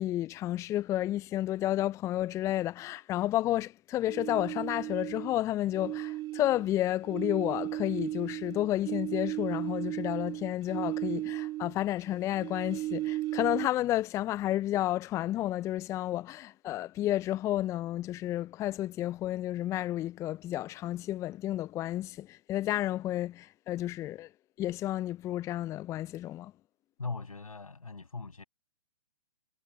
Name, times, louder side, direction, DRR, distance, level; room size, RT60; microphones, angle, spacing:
voice 1, 0.0-24.3 24.6-26.5, left 14 dB, 15° left, 0.6 m, -31 dB
sound 1, 4.1-5.4 5.7-11.8 12.1-13.7, right 16 dB, 25° right, 3.2 m, -35 dB
voice 2, 27.0-28.4, left 4 dB, 75° left, 6.7 m, -39 dB
figure-of-eight pair, 120°, 18 cm